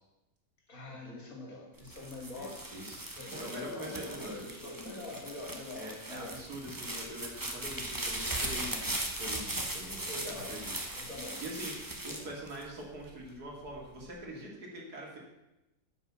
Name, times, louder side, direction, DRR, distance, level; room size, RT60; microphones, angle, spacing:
voice 1, 0.7-2.7 3.1-6.4 10.0-10.7 10.9-11.4 12.1-12.3, left 2 dB, 55° left, 0 dB, 2.7 m, -44 dB
sound 1, 1.8-13.1 13.7-14.2, right 1 dB, 15° right, 1.1 m, -39 dB
voice 2, 2.3-4.4 5.8-10.7 11.4-11.8 12.0-15.2, right 1 dB, 65° right, -2 dB, 2.9 m, -44 dB
9.5 x 6.0 x 7.1 m, 0.96 s
omnidirectional pair, 1.8 m